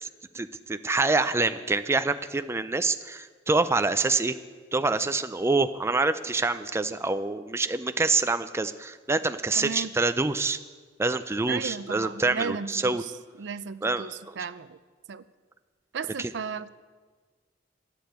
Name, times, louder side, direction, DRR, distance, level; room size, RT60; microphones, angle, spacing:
voice 1, 0.3-4.3 4.7-10.6 11.0-13.0 13.8-14.4 16.2-16.3, right 3 dB, 15° right, 10 dB, 0.4 m, -26 dB
voice 2, 9.6-9.9 11.5-13.1 13.4-14.8 15.1-15.2 15.9-16.7, right 5 dB, 70° right, 15 dB, 0.5 m, -35 dB
11.5 x 8.6 x 8.2 m, 1.5 s
head